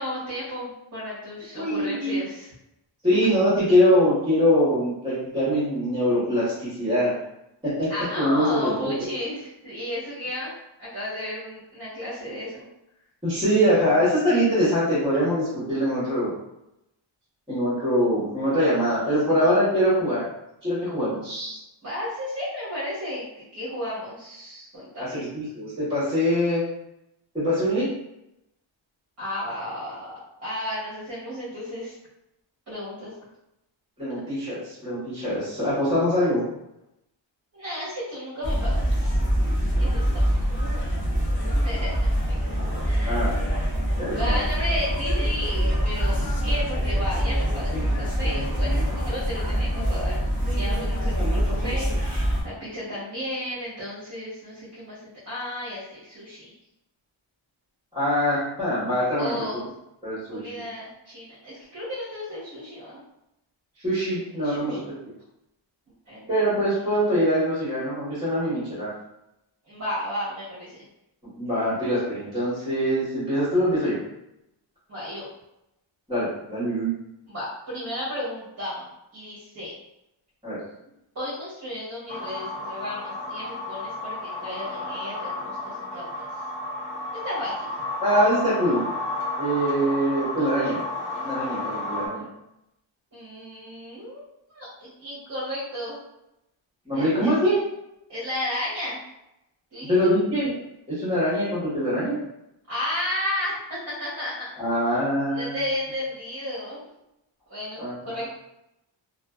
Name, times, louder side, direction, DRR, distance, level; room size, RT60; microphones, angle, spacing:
voice 1, 0.0-2.5 7.9-10.5 10.8-12.6 18.6-18.9 19.2-19.3 21.8-25.2 29.2-31.9 32.7-33.1 37.5-39.2 39.8-40.3 41.5-41.9 42.8-43.4 43.9-50.2 50.5-56.5 59.2-59.6 60.3-63.0 64.4-64.8 66.1-66.3 69.7-70.8 74.9-75.3 77.3-78.8 79.1-79.7 81.1-86.3 87.2-87.7 93.1-94.2 94.5-96.0 96.9-97.3 98.1-99.0 99.7-99.9 102.7-104.5 104.9-105.0 105.3-106.8 107.5-108.2, left 1 dB, 35° right, -9 dB, 0.9 m, -33 dB
voice 2, 1.5-2.2 3.0-7.1 7.6-7.9 8.1-8.9 13.2-16.3 17.5-20.2 20.6-21.6 25.0-26.6 27.3-27.9 34.0-36.4 43.0-43.5 44.0-44.4 57.9-59.3 60.0-60.5 63.8-64.8 66.3-68.9 71.3-74.0 76.1-76.9 80.4-80.6 88.0-88.8 89.4-90.8 91.2-92.3 96.8-97.6 99.8-100.5 100.9-102.2 104.6-105.6 107.8-108.2, equal, 10° right, -12 dB, 1.0 m, -23 dB
sound 1, 38.4-52.4, equal, 25° left, 0.5 m, -24 dB
sound 2, 82.1-92.1, left 2 dB, 65° left, 0.7 m, -32 dB
2.4 x 2.3 x 2.3 m, 0.87 s
wide cardioid pair, 155°, 48 cm